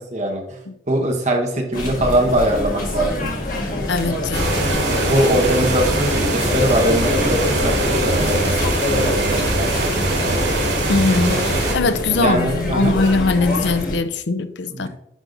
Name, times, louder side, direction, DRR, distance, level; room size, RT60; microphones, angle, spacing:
voice 1, 0.1-0.6 0.9-3.3 5.0-8.7 8.9-9.8 10.1-10.3 12.1-12.9 14.7-14.9, right 1 dB, 40° right, 1 dB, 1.2 m, -21 dB
sound 1, 1.7-14.0, left 1 dB, 50° left, 1.5 m, -25 dB
voice 2, 3.9-5.2 10.9-14.9, left 3 dB, 85° left, 12 dB, 0.5 m, -21 dB
sound 2, 4.3-11.7, right 2 dB, 90° right, 2.5 m, -21 dB
10.0 x 5.0 x 2.6 m, 0.81 s
head